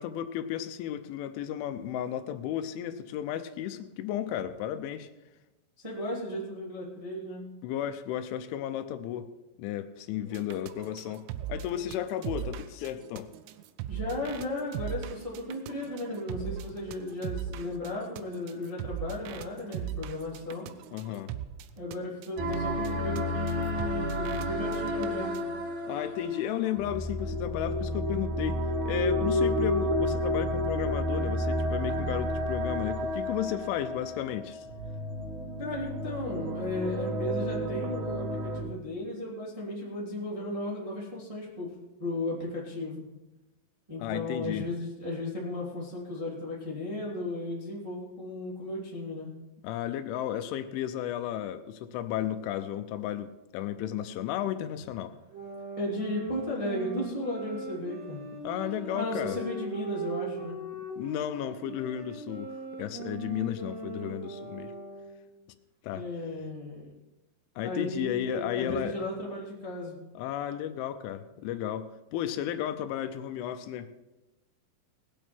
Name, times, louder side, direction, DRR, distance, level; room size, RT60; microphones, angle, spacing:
voice 1, 0.0-5.1 7.6-9.3 9.6-13.3 20.9-21.3 25.9-28.6 28.9-34.7 44.0-44.7 49.6-55.1 58.4-59.4 61.0-62.5 62.8-64.7 65.8-66.0 67.6-69.0 70.2-73.9, left 11 dB, 85° left, 10 dB, 3.1 m, -33 dB
voice 2, 5.8-7.5 10.2-10.4 13.9-20.7 21.7-25.3 35.6-41.7 42.0-43.0 43.9-49.3 55.8-58.2 58.9-60.6 65.9-66.8 67.6-70.0, left 1 dB, 15° right, -5 dB, 1.2 m, -35 dB
sound 1, 10.3-22.0 22.2-22.6 22.9-23.0 23.2-23.3 23.5-23.6 23.8-24.5 24.7-25.1 25.4-25.5, right 10 dB, 85° right, 3.2 m, -39 dB
sound 2, 22.4-38.6, left 1 dB, 65° right, 1.9 m, -31 dB
sound 3, 55.3-65.3, right 3 dB, 40° right, 2.7 m, -40 dB
19.0 x 8.4 x 4.5 m, 1.0 s
omnidirectional pair, 5.5 m